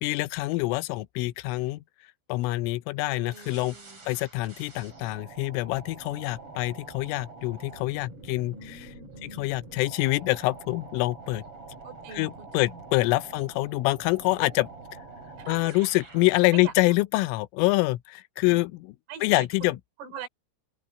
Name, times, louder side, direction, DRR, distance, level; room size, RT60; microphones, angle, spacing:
voice 1, 0.0-1.8 2.3-3.8 4.1-8.9 9.2-11.4 12.1-14.7 15.5-19.0 19.2-19.8, left 20 dB, 85° left, 3.2 m, -26 dB
voice 2, 3.1-4.1 8.5-9.5 11.8-12.8 13.3-13.4 15.4-15.9 16.5-16.7 19.1-20.3, right 6 dB, 80° right, 6.5 m, -44 dB
sound 1, 3.3-16.4, right 3 dB, 30° right, 6.9 m, -46 dB
open air
omnidirectional pair, 5.8 m